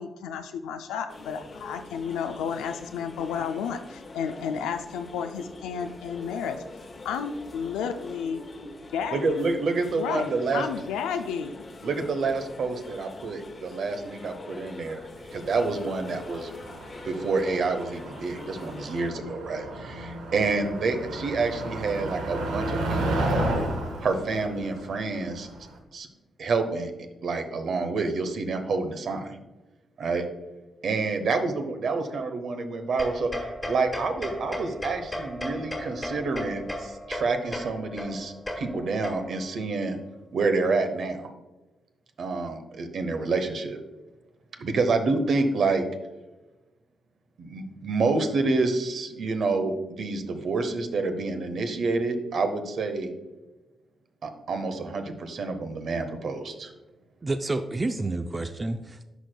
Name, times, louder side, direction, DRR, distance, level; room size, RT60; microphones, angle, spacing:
voice 1, 0.0-6.6 7.0-8.4 8.9-9.5 9.9-11.6, left 7 dB, 90° left, 7 dB, 0.3 m, -32 dB
sound 1, 1.1-19.1, left 2 dB, 50° left, 1.0 m, -44 dB
voice 2, 9.1-10.6 11.8-16.5 17.0-23.4 24.0-25.5 25.9-26.1 26.4-26.9 27.2-29.4 30.0-30.2 30.8-40.0 40.3-41.3 42.2-43.8 44.6-45.8 47.4-53.1 54.2-56.7, right 3 dB, 65° right, 7 dB, 0.8 m, -28 dB
Motor vehicle (road), 15.4-25.7, right 1 dB, 90° right, 1.0 m, -32 dB
sound 2, 33.0-39.6, equal, 15° left, 1.3 m, -35 dB
voice 3, 57.2-59.0, right 2 dB, 35° right, 8 dB, 0.4 m, -29 dB
11.0 x 4.4 x 2.2 m, 1.1 s
supercardioid pair, 50°, 0 cm